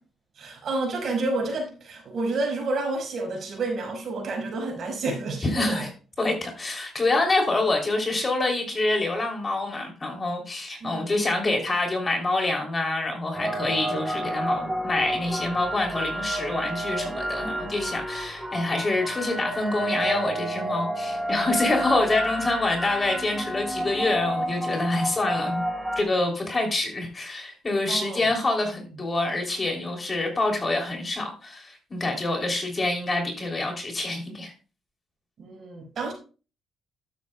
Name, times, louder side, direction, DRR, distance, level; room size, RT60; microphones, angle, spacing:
voice 1, 0.4-5.9 10.8-11.2 27.9-28.3 35.4-36.1, right 2 dB, 60° right, 1 dB, 5.1 m, -30 dB
voice 2, 5.5-5.9 6.2-25.6 26.0-34.5, left 2 dB, 30° left, 2 dB, 3.1 m, -26 dB
sound 1, 13.3-26.0, right 1 dB, 10° right, 3.0 m, -30 dB
12.0 x 9.2 x 2.3 m, 0.35 s
cardioid pair, 90°, 0 cm